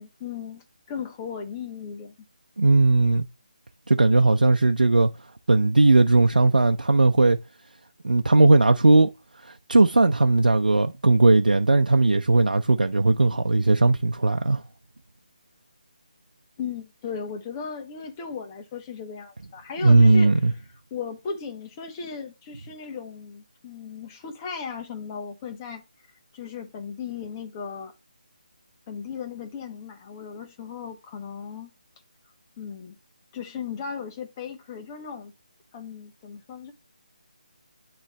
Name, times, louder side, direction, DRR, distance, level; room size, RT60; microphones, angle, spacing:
voice 1, 0.0-2.1 16.6-20.3 20.9-25.8 26.3-27.9 28.9-31.7 32.6-32.9 33.3-35.3 35.7-36.7, left 6 dB, 20° left, 1.4 m, -36 dB
voice 2, 2.6-3.3 3.9-5.1 5.5-7.4 8.0-9.1 9.4-14.6 19.8-20.5, right 2 dB, 90° right, 0.7 m, -18 dB
9.7 x 3.3 x 3.2 m
figure-of-eight pair, 160°, 4 cm